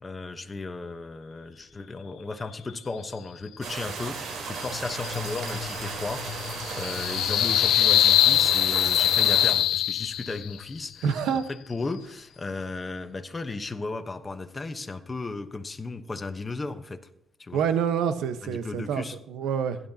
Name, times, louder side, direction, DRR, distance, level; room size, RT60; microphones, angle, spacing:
voice 1, 0.0-11.2 11.5-17.0 17.4-17.6 18.4-19.2, left 3 dB, 25° left, 8 dB, 1.1 m, -35 dB
sound 1, 3.6-9.5, right 5 dB, 65° right, 3.9 m, -35 dB
sound 2, 4.6-10.5, left 12 dB, 80° left, 0.4 m, -23 dB
voice 2, 11.0-11.5 17.5-19.8, right 7 dB, 85° right, 9 dB, 1.1 m, -27 dB
16.0 x 11.0 x 2.9 m, 0.80 s
cardioid pair, 90°, 0 cm